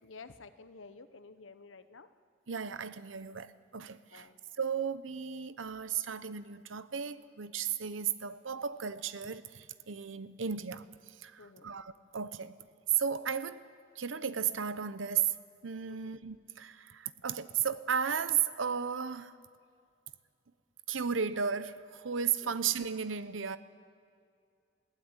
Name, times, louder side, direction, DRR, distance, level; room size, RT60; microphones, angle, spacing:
voice 1, 0.0-2.1 4.1-4.4 11.4-11.8 15.9-16.1 22.4-22.5, left 4 dB, 85° left, 1.0 m, -52 dB
voice 2, 2.5-4.3 4.6-12.5 12.9-13.6 14.0-15.4 15.6-19.4 20.9-23.6, right 7 dB, 80° right, 0.8 m, -34 dB
20.5 x 15.5 x 8.8 m
head